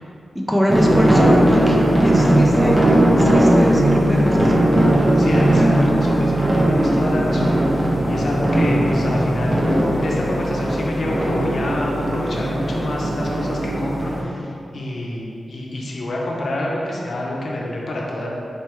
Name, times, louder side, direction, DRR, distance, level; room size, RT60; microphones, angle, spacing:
voice 1, 0.5-2.8 3.1-4.5 5.5-5.8, equal, ahead, -2 dB, 0.3 m, -23 dB
sound 1, 0.7-14.2, right 1 dB, 25° right, 0.7 m, -18 dB
voice 2, 5.2-18.3, left 1 dB, 60° left, -3 dB, 0.6 m, -27 dB
4.3 x 3.3 x 3.0 m, 2.5 s
wide cardioid pair, 135°, 0 cm